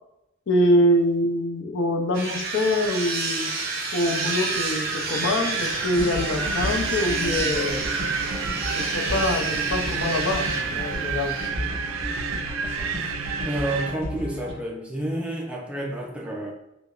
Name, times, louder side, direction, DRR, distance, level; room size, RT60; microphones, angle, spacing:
voice 1, 0.5-3.5 3.9-7.9 8.8-11.4, left 1 dB, 60° left, 3 dB, 0.5 m, -24 dB
sound 1, 2.1-11.5, right 3 dB, 50° right, 0.7 m, -30 dB
Wind, 4.0-14.0, right 6 dB, 90° right, 0.3 m, -31 dB
sound 2, 5.9-14.5, equal, 30° right, 1.4 m, -33 dB
voice 2, 13.4-16.5, right 1 dB, 5° right, -1 dB, 0.4 m, -30 dB
4.7 x 2.0 x 2.3 m, 0.86 s
head